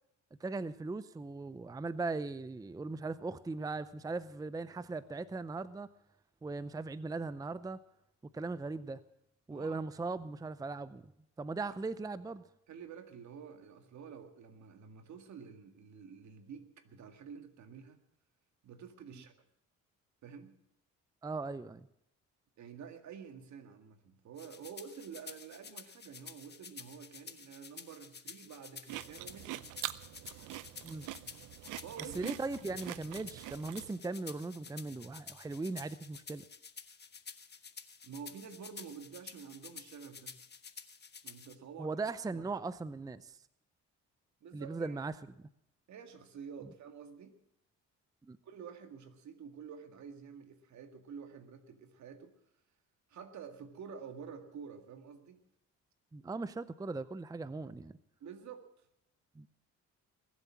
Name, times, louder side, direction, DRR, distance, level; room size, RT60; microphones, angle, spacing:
voice 1, 0.4-5.9 6.4-7.8 8.3-9.0 9.5-11.1 11.4-12.4 21.2-21.9 30.8-31.1 32.1-36.4 41.8-43.4 44.5-45.1 48.3-48.4 56.1-57.9 59.4-59.5, right 3 dB, 10° right, 15 dB, 0.5 m, -39 dB
voice 2, 9.5-9.8 12.7-18.0 18.6-19.3 20.2-20.5 22.6-29.7 31.8-32.3 38.0-40.3 41.2-41.9 42.3-42.6 44.4-45.0 45.9-47.3 48.4-52.3 53.1-55.4 58.2-58.7, right 6 dB, 70° right, 7 dB, 2.0 m, -49 dB
sound 1, 24.4-41.5, left 6 dB, 35° left, 1.3 m, -50 dB
sound 2, 28.9-33.9, right 15 dB, 90° right, 0.6 m, -44 dB
21.5 x 8.2 x 7.3 m, 0.77 s
cardioid pair, 90°, 30 cm